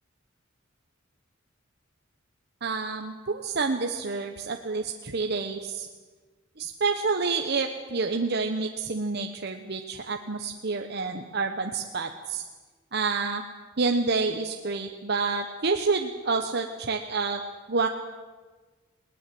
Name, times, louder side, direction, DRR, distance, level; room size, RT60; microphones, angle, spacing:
voice 1, 2.6-5.9 6.6-12.4 12.9-13.4 13.8-17.4 17.7-17.9, right 4 dB, 55° right, 4 dB, 1.1 m, -28 dB
20.0 x 19.0 x 7.8 m, 1.3 s
head